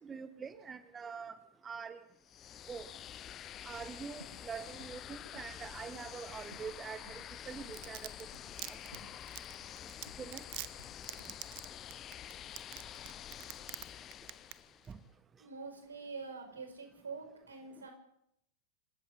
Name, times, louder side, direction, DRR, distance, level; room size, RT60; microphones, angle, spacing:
voice 1, 0.0-1.4 1.6-2.0 2.7-2.9 3.6-8.1 8.7-9.1 10.2-10.4 14.9-15.0, right 6 dB, 20° right, 12 dB, 1.1 m, -45 dB
sound 1, 2.2-15.0, left 10 dB, 30° left, 0.9 m, -48 dB
sound 2, 4.2-4.5 4.8-6.8 7.1-7.3 7.7-8.0 8.3-8.6 8.9-9.8 10.1-11.4 12.4-13.3 13.6-14.0, left 1 dB, 90° left, 6.6 m, -58 dB
Domestic sounds home sounds, 7.5-13.8 14.1-14.5 14.8-14.9, right 22 dB, 45° right, 1.0 m, -43 dB
voice 2, 15.4-17.9, right 4 dB, 75° right, 6 dB, 5.1 m, -46 dB
26.5 x 14.5 x 6.8 m, 0.77 s
figure-of-eight pair, 90°, 0 cm